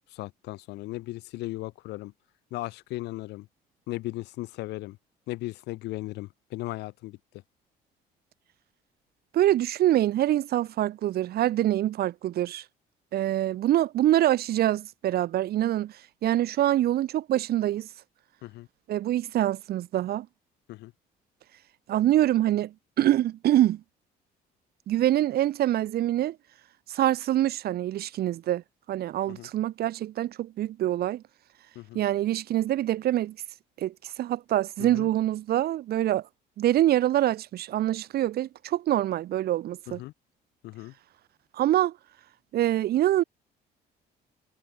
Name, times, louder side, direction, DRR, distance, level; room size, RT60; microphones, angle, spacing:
voice 1, 0.1-2.1 2.5-3.5 3.9-5.0 5.3-7.2 18.4-18.7 20.7-20.9 29.3-29.5 31.7-32.0 34.8-35.1 39.9-40.1 40.6-40.9, left 18 dB, 85° left, 7.6 m, -37 dB
voice 2, 9.3-12.6 13.1-15.9 16.2-17.9 18.9-20.3 21.9-23.8 24.9-26.4 26.9-28.6 28.9-31.2 31.9-33.4 33.8-36.2 36.6-40.0 41.5-41.9 42.5-43.2, right 13 dB, 65° right, 3.9 m, -25 dB
cardioid pair, 110°, 17 cm